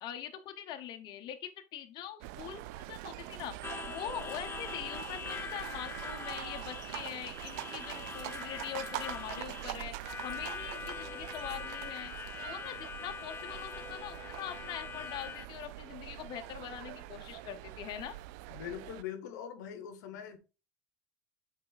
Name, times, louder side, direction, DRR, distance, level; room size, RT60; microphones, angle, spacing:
voice 1, 0.0-2.6 2.9-3.6 3.9-9.9 10.2-12.1 12.4-18.1, left 10 dB, 55° left, 0.9 m, -43 dB
sound 1, 2.2-19.0, right 16 dB, 80° right, 0.4 m, -44 dB
Harmonica, 3.6-15.5, left 6 dB, 25° left, 0.4 m, -43 dB
voice 2, 18.5-20.4, left 9 dB, 90° left, 0.9 m, -42 dB
6.6 x 4.4 x 4.0 m
supercardioid pair, 100°, 9 cm